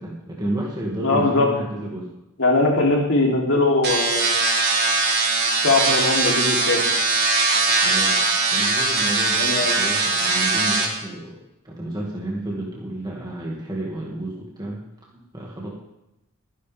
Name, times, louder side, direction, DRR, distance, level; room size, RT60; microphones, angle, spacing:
voice 1, 0.0-2.1 7.8-8.2 8.5-11.4 11.6-14.8 15.3-15.7, right 1 dB, 20° right, -4 dB, 2.1 m, -31 dB
voice 2, 1.0-1.5 2.4-4.3 5.6-6.8 9.4-9.7, left 2 dB, 65° left, -1 dB, 3.2 m, -20 dB
sound 1, 3.8-10.9, right 3 dB, 50° right, 3.1 m, -21 dB
22.0 x 10.0 x 3.5 m, 0.91 s
head